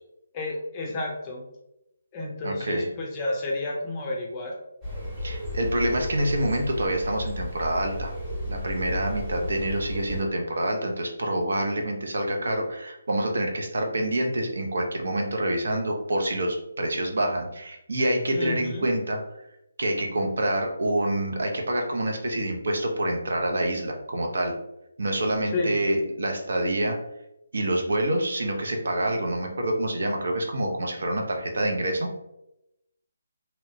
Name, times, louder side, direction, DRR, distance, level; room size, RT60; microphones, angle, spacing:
voice 1, 0.3-1.4 2.1-4.6 18.3-18.9 25.5-25.8, left 2 dB, 20° left, -2 dB, 0.4 m, -30 dB
voice 2, 2.4-2.9 5.2-8.1 8.5-19.2 19.8-24.5 25.0-27.0 27.5-32.1, right 1 dB, 70° right, 2 dB, 0.5 m, -27 dB
sound 1, 4.8-10.2, left 1 dB, 5° right, 0.8 m, -33 dB
2.8 x 2.1 x 2.6 m, 0.86 s
hypercardioid pair, 170°, 0 cm